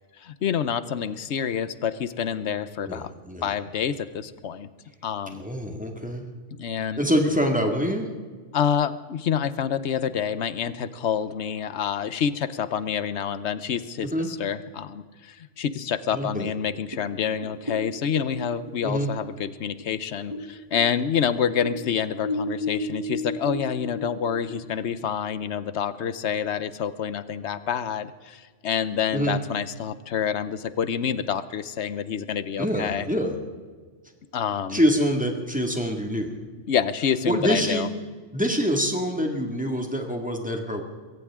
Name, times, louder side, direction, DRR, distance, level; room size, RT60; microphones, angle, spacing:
voice 1, 0.2-3.1 3.4-4.7 5.0-5.5 6.6-7.0 8.5-33.1 34.3-34.8 36.7-37.9, left 8 dB, 65° left, 14 dB, 1.0 m, -27 dB
voice 2, 2.9-3.5 5.3-6.3 7.0-8.1 14.1-14.3 16.1-16.5 18.8-19.1 29.1-29.4 32.6-33.3 34.7-36.3 37.3-37.9 38.3-40.8, equal, 5° right, 2 dB, 2.0 m, -25 dB
sound 1, 16.9-20.5 20.7-24.8, left 1 dB, 20° right, 3.1 m, -33 dB
22.5 x 17.5 x 3.7 m, 1.5 s
omnidirectional pair, 1.2 m